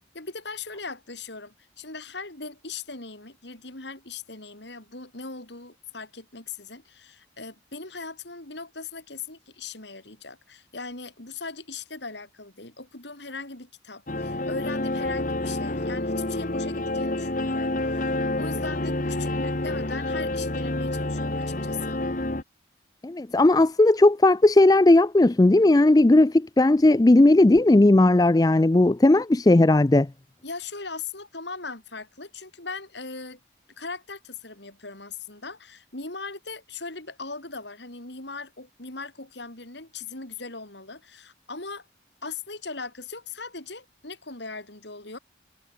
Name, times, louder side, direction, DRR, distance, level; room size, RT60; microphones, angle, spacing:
voice 1, 0.1-22.0 30.4-33.4 33.8-41.9 42.2-45.2, left 4 dB, 65° left, 4.2 m, -39 dB
sound 1, 14.1-22.4, left 2 dB, 45° left, 1.4 m, -28 dB
voice 2, 23.0-30.1, left 2 dB, 20° left, 0.4 m, -17 dB
head